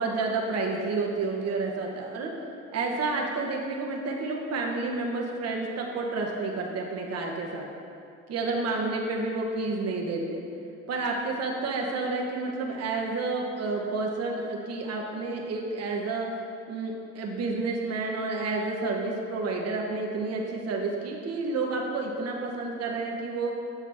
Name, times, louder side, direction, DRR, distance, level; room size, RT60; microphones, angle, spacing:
voice 1, 0.0-2.3 2.7-7.7 8.3-10.4 10.9-16.4 16.7-23.5, right 3 dB, 50° right, 0 dB, 1.2 m, -30 dB
7.3 x 7.3 x 3.5 m, 2.7 s
hypercardioid pair, 60°, 33 cm